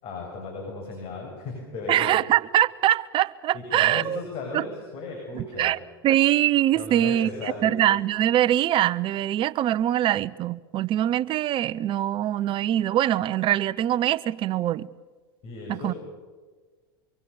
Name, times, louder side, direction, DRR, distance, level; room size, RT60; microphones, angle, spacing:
voice 1, 0.0-2.2 3.5-5.7 6.7-7.8 15.4-16.0, left 3 dB, 50° left, 7.3 m, -36 dB
voice 2, 1.9-4.2 4.5-4.6 5.3-5.8 6.0-14.9 15.7-15.9, right 12 dB, 40° right, 0.8 m, -23 dB
25.0 x 23.5 x 7.1 m
hypercardioid pair, 90°, 13 cm